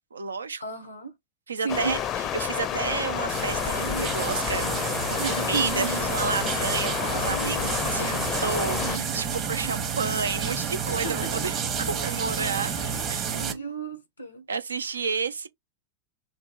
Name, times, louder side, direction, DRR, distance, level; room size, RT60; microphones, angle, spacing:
voice 1, 0.1-0.6 1.5-2.0 2.3-11.6 11.9-12.7 13.1-13.7 14.5-15.5, right 5 dB, 75° right, 0.4 m, -31 dB
voice 2, 0.6-1.2 1.6-2.1 5.2-5.9 6.5-6.9 11.0-11.3 12.6-14.5 14.9-15.1, right 4 dB, 85° left, 0.6 m, -34 dB
Stream, 1.7-9.0, left 10 dB, 30° left, 0.5 m, -30 dB
Growling / Cricket, 2.6-13.6, right 2 dB, 90° right, 1.1 m, -42 dB
sound 1, 3.3-13.5, right 6 dB, 30° right, 0.9 m, -30 dB
3.2 x 2.2 x 4.2 m
figure-of-eight pair, 90°, 0 cm